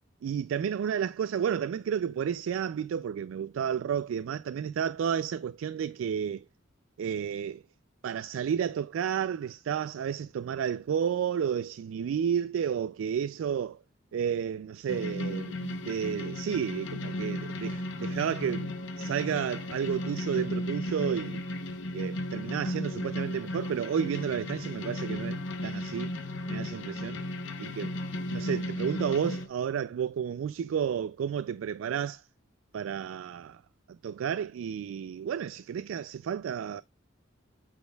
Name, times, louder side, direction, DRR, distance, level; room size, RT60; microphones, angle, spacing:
voice 1, 0.2-6.5 7.0-7.6 8.0-13.7 14.1-21.4 21.9-26.1 26.5-27.2 27.6-27.9 28.3-32.2 32.7-33.6 34.0-36.8, right 8 dB, 75° right, 0.3 m, -31 dB
sound 1, 14.9-29.5, left 1 dB, 65° left, 0.9 m, -35 dB
8.3 x 6.2 x 2.3 m
head